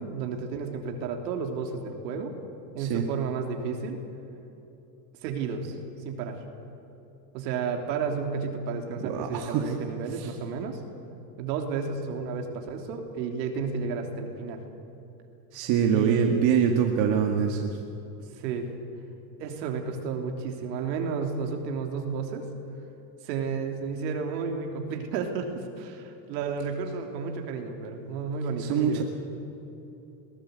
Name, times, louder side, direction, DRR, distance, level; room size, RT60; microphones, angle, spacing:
voice 1, 0.0-2.3 2.7-4.0 5.2-5.8 6.1-6.4 7.3-10.8 11.4-14.6 15.9-16.4 18.2-18.7 19.4-22.5 23.2-29.0, right 5 dB, 80° right, 3 dB, 3.3 m, -32 dB
voice 2, 9.0-9.7 10.1-10.3 15.5-17.8 28.6-29.0, right 7 dB, 65° right, 2 dB, 2.2 m, -25 dB
22.5 x 17.0 x 8.2 m, 3.0 s
supercardioid pair, 115°, 49 cm